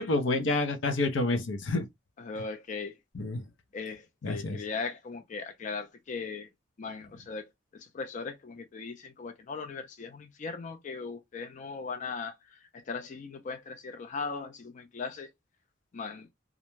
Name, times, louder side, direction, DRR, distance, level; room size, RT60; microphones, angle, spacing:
voice 1, 0.0-1.9 3.1-3.4 4.2-4.6, left 2 dB, 80° left, 0.6 m, -28 dB
voice 2, 2.2-2.9 3.7-6.5 6.8-7.4 7.8-12.3 12.9-15.3 15.9-16.3, left 4 dB, 40° left, 0.4 m, -38 dB
2.4 x 2.1 x 3.0 m
head